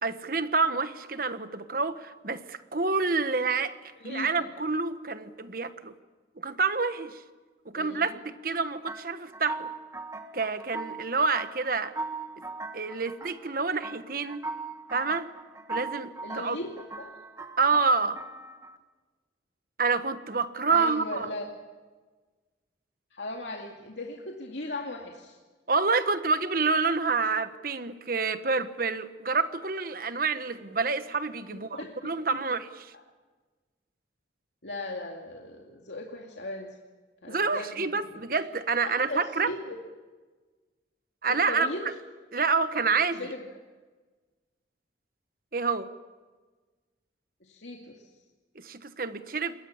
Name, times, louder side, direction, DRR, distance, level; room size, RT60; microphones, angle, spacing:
voice 1, 0.0-3.7 4.0-5.9 6.4-7.2 7.6-9.7 10.3-11.9 12.7-14.4 14.9-15.3 15.7-16.6 17.6-18.2 19.8-21.3 25.7-32.9 37.3-39.5 41.2-41.9 42.3-43.2 45.5-45.9 48.5-49.5, right 4 dB, 50° right, 11 dB, 1.3 m, -28 dB
voice 2, 4.0-4.5 7.7-8.2 16.2-17.1 20.7-21.4 23.1-25.4 31.5-32.2 34.6-36.7 37.2-38.3 39.0-39.8 41.5-41.9 43.2-43.4 47.4-48.0, left 2 dB, 75° left, 0 dB, 2.4 m, -38 dB
sound 1, 8.9-18.8, right 3 dB, 15° right, 1.5 m, -40 dB
27.5 x 22.0 x 7.2 m, 1.3 s
head